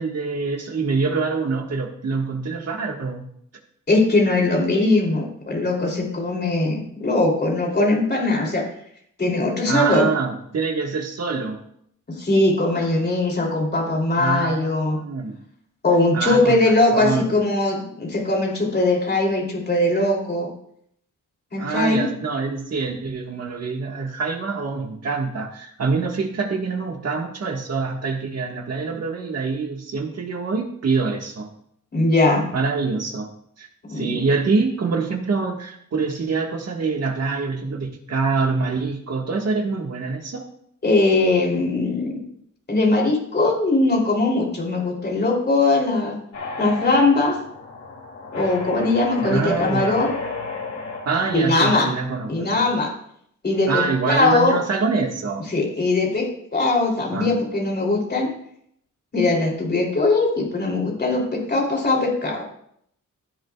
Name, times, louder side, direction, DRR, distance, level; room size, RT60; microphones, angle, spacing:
voice 1, 0.0-3.3 9.7-11.6 14.2-15.4 16.1-17.4 21.6-31.5 32.5-33.3 33.6-40.5 49.2-50.0 51.0-52.7 53.7-55.5 57.1-57.3, right 4 dB, 50° right, 2 dB, 1.6 m, -25 dB
voice 2, 3.9-8.6 9.2-10.1 12.2-15.0 15.8-20.5 21.5-22.1 31.9-32.5 33.9-34.1 40.8-42.2 42.7-46.1 46.6-47.4 48.3-50.1 51.3-51.9 52.3-52.9 53.4-54.6 55.5-58.3 59.1-62.4, left 2 dB, 30° left, -1 dB, 3.1 m, -20 dB
sound 1, 46.3-51.9, left 4 dB, 60° left, 3.0 m, -33 dB
15.5 x 10.5 x 2.4 m, 0.70 s
wide cardioid pair, 175°, 32 cm